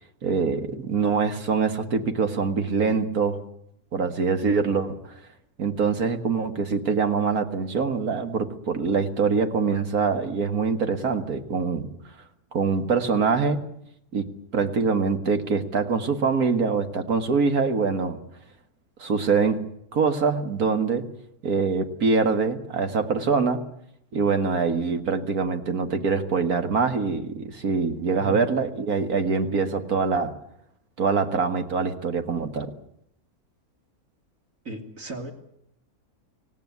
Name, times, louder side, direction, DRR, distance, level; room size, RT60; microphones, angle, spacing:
voice 1, 0.2-3.4 3.9-5.1 5.6-11.9 12.5-13.6 14.1-14.3 14.5-18.2 19.0-19.6 19.9-21.1 21.4-23.6 24.1-30.3 31.0-32.7, right 5 dB, 80° right, 7 dB, 2.3 m, -24 dB
voice 2, 34.6-35.3, right 1 dB, 60° right, 3 dB, 3.2 m, -35 dB
25.5 x 17.5 x 9.6 m, 0.78 s
omnidirectional pair, 1.5 m